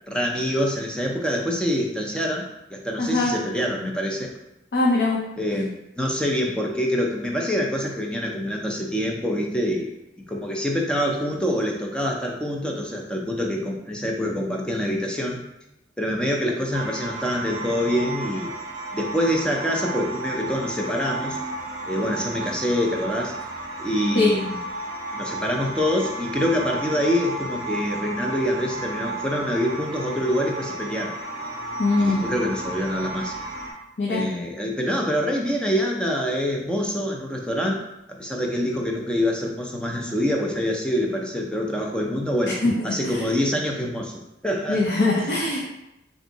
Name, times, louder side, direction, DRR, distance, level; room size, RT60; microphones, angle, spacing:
voice 1, 0.1-4.3 5.4-9.9 10.3-15.4 16.0-18.5 18.9-21.4 21.9-23.4 23.8-24.5 25.1-31.1 32.0-33.4 34.1-37.8 38.2-44.8, equal, 5° left, 0 dB, 0.4 m, -25 dB
voice 2, 3.0-3.3 4.7-5.2 24.2-24.3 31.8-32.3 34.0-34.2 42.6-43.2 44.7-45.6, left 2 dB, 70° left, -4 dB, 0.6 m, -22 dB
sound 1, 16.7-33.7, right 2 dB, 45° right, 0.7 m, -33 dB
3.5 x 2.6 x 3.9 m, 0.90 s
head